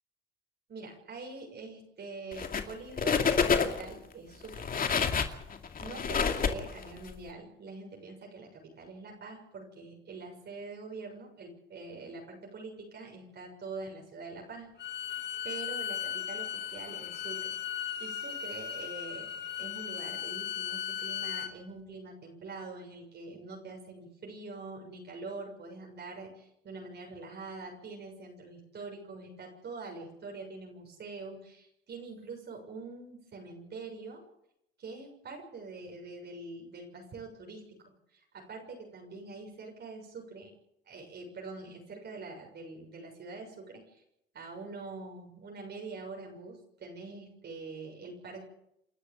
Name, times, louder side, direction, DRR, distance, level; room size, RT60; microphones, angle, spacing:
voice 1, 0.7-4.7 5.8-14.7 15.4-17.6 18.0-19.3 19.6-34.2 34.8-37.6 38.1-40.5 40.9-44.0 44.3-48.4, right 3 dB, 55° right, 1 dB, 7.0 m, -44 dB
sound 1, 2.3-2.7 3.0-3.9 4.4-7.1, left 6 dB, 45° left, 2.4 m, -28 dB
Bowed string instrument, 14.8-21.5, left 9 dB, 60° left, 2.7 m, -37 dB
28.5 x 12.0 x 8.9 m, 0.80 s
cardioid pair, 90°, 20 cm